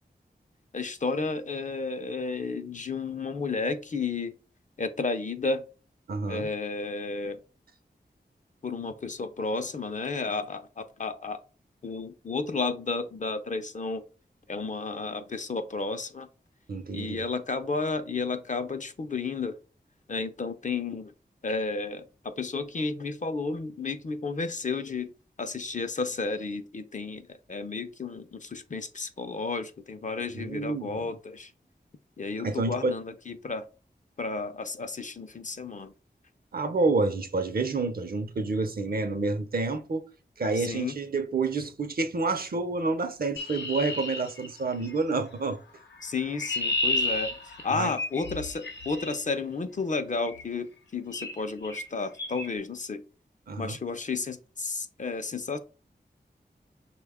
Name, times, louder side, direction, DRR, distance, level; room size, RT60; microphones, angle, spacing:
voice 1, 0.7-4.3 4.8-5.6 6.3-7.4 8.6-11.4 11.8-14.0 14.5-16.3 16.9-19.6 20.1-21.1 21.4-25.1 25.4-31.5 32.2-33.7 34.2-35.9 40.6-41.0 46.0-53.0 53.6-55.6, left 4 dB, 45° left, 0.5 m, -32 dB
voice 2, 6.1-6.5 16.7-17.2 30.4-31.1 32.4-32.9 36.5-40.0 40.4-45.6 47.7-47.9 53.5-53.8, right 3 dB, 60° right, 0.6 m, -28 dB
Chirp tweet, 43.4-45.0 46.0-49.2 50.3-50.5 51.1-51.4 51.6-51.9 52.2-52.5, left 2 dB, 90° left, 0.7 m, -32 dB
5.8 x 2.2 x 3.5 m
wide cardioid pair, 65°, 18 cm